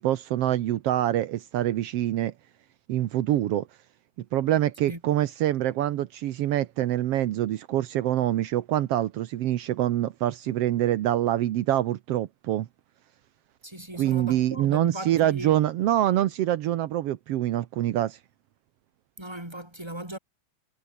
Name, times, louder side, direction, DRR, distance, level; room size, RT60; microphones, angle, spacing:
voice 1, 0.0-2.3 2.9-3.7 4.3-12.7 14.0-18.2, right 13 dB, 80° right, 1.4 m, -25 dB
voice 2, 13.6-15.6 19.2-20.2, right 1 dB, 5° right, 5.1 m, -37 dB
omnidirectional pair, 3.9 m